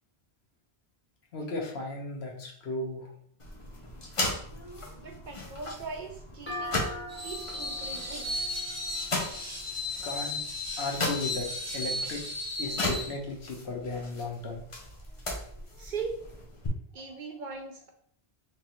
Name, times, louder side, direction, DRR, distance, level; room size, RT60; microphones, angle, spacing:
voice 1, 1.3-3.1 10.0-10.4 10.8-11.5 11.7-12.2 12.6-14.7, left 2 dB, 90° left, 1 dB, 1.1 m, -35 dB
sound 1, 3.4-16.7, left 2 dB, 35° left, 0.7 m, -37 dB
voice 2, 4.9-6.9 7.2-8.4 15.8-16.2 16.9-17.9, right 4 dB, 60° right, 3 dB, 0.6 m, -40 dB
sound 2, 6.5-10.0, left 1 dB, 10° left, 1.4 m, -42 dB
Screech, 7.1-13.1, left 2 dB, 15° right, 0.9 m, -35 dB
3.8 x 3.2 x 3.0 m, 0.65 s
omnidirectional pair, 1.1 m